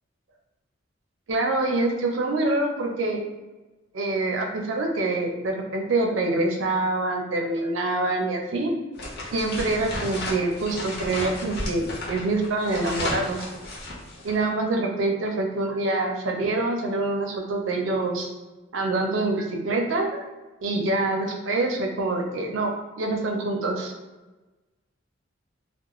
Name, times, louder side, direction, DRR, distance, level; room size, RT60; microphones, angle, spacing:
voice 1, 1.3-3.2 3.9-8.7 9.3-13.4 14.2-18.3 18.7-20.2 20.6-22.7 23.0-23.9, right 2 dB, 80° right, 1 dB, 0.5 m, -25 dB
sound 1, 8.9-14.4, left 2 dB, 55° left, 0.6 m, -33 dB
2.4 x 2.1 x 3.0 m, 1.1 s
head